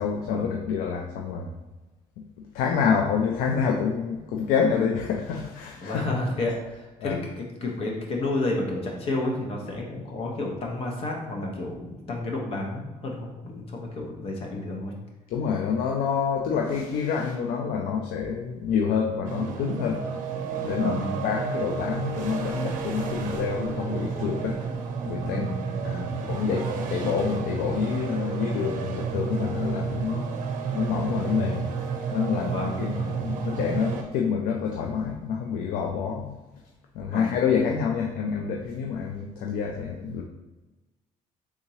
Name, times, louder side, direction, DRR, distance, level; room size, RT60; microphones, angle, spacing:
voice 1, 0.0-1.5 2.2-2.3 2.5-6.0 7.0-7.2 15.3-20.0 20.6-24.6 25.1-25.5 25.8-30.3 30.7-31.7 32.1-36.4 37.0-40.2, left 6 dB, 85° left, 1 dB, 0.4 m, -27 dB
voice 2, 5.8-14.9 20.7-21.3 25.2-25.8 32.5-32.7 37.1-37.3, left 2 dB, 45° left, 0 dB, 0.7 m, -31 dB
sound 1, 19.3-34.0, right 5 dB, 70° right, 0.5 m, -31 dB
3.6 x 2.9 x 2.8 m, 1.1 s
cardioid pair, 150°, 14 cm